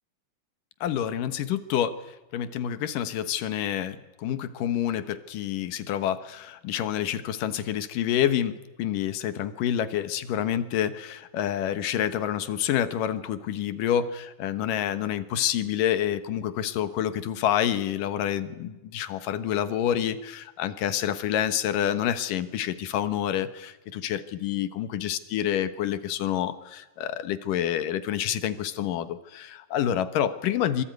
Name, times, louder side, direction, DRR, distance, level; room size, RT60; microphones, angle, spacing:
voice 1, 0.8-2.0 2.3-30.8, left 10 dB, 85° left, 12 dB, 2.9 m, -28 dB
25.5 x 24.0 x 9.4 m, 1.1 s
omnidirectional pair, 3.7 m